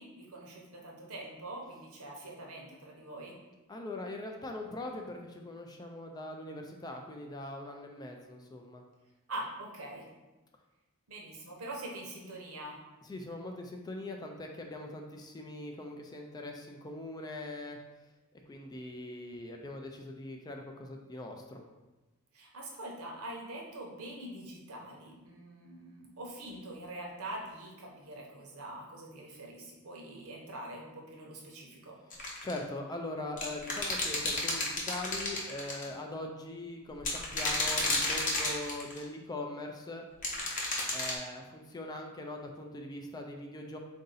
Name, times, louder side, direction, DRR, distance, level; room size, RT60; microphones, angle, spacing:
voice 1, 0.0-3.4 9.3-10.1 11.1-12.8 22.3-32.0, right 1 dB, 70° right, -1 dB, 0.9 m, -44 dB
voice 2, 3.7-8.8 13.0-17.8 18.5-21.6 32.4-40.0 40.9-43.8, left 1 dB, 20° left, 2 dB, 0.3 m, -41 dB
sound 1, 32.1-32.6 33.4-35.8 37.0-39.0 40.2-41.2, left 2 dB, 35° left, 0.8 m, -31 dB
3.8 x 2.6 x 3.9 m, 1.1 s
head